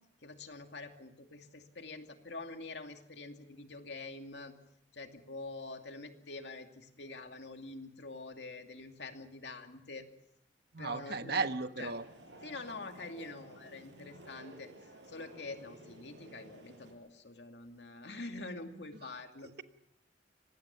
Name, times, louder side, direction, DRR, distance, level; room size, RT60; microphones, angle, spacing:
voice 1, 0.2-4.5 4.9-10.1 10.8-11.5 11.8-11.9 12.4-14.7 15.1-19.5, left 3 dB, 70° left, 5 dB, 2.5 m, -46 dB
voice 2, 10.7-12.1 19.0-19.1, right 4 dB, 60° right, 10 dB, 1.2 m, -35 dB
sound 1, 11.8-16.9, right 1 dB, 85° right, 6.6 m, -54 dB
25.0 x 19.5 x 7.2 m, 0.74 s
head